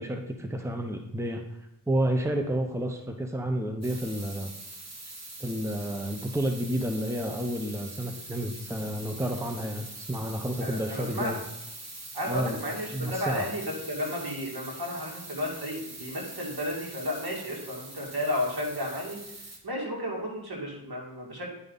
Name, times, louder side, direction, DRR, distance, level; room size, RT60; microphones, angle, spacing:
voice 1, 0.0-1.4 1.9-4.5 5.4-11.4 12.3-12.6 12.9-13.5, right 1 dB, 5° right, 4 dB, 0.8 m, -30 dB
sound 1, 3.8-19.6, right 2 dB, 40° right, 1.5 m, -43 dB
voice 2, 10.6-11.3 12.1-19.2 19.6-21.5, left 1 dB, 70° right, -3 dB, 2.5 m, -33 dB
9.6 x 5.3 x 4.0 m, 0.88 s
wide cardioid pair, 55°, 39 cm